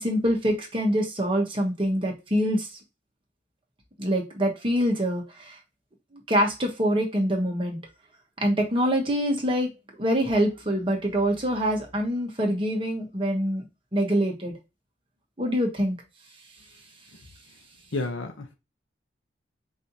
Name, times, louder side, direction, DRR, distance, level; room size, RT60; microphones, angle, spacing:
voice 1, 0.0-2.7 4.0-5.6 6.3-7.8 8.4-9.7 10.0-13.7 13.9-14.5 15.4-16.0, equal, 25° right, 1.1 m, -25 dB
voice 2, 17.9-18.5, left 3 dB, 85° left, 0.8 m, -30 dB
5.3 x 2.7 x 2.8 m
head